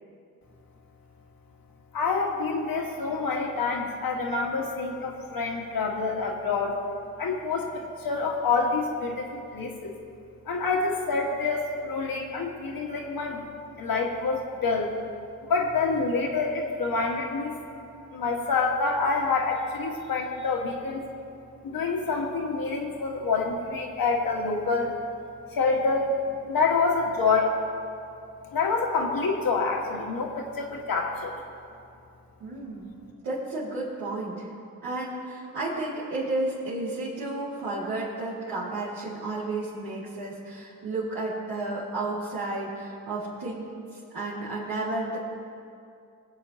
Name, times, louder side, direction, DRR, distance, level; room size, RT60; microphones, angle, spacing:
voice 1, 1.9-6.8 7.2-10.0 10.5-13.4 13.8-15.0 15.5-17.6 18.1-21.0 21.6-25.0 25.5-27.6 28.5-31.4, left 4 dB, 60° left, 1 dB, 1.8 m, -27 dB
voice 2, 32.4-32.9 33.2-34.5 34.8-45.2, right 2 dB, 80° right, -12 dB, 2.6 m, -32 dB
23.0 x 7.9 x 3.0 m, 2.5 s
hypercardioid pair, 45°, 39 cm